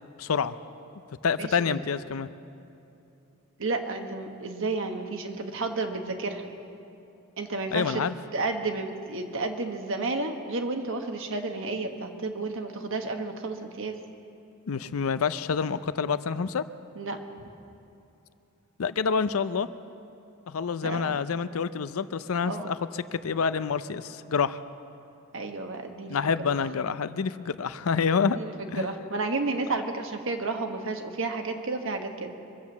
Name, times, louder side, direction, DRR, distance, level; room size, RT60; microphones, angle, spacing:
voice 1, 0.2-0.5 1.2-2.3 7.7-8.1 14.7-16.6 18.8-19.7 20.5-24.6 26.1-28.4 28.7-28.9, left 6 dB, 75° left, 13 dB, 0.5 m, -27 dB
voice 2, 1.4-1.8 3.6-6.4 7.4-8.0 8.3-14.0 16.9-17.2 20.8-21.2 22.4-22.7 25.3-26.2 26.5-26.6 28.2-32.3, right 3 dB, 65° right, 5 dB, 1.3 m, -31 dB
24.0 x 8.0 x 7.2 m, 2.8 s
head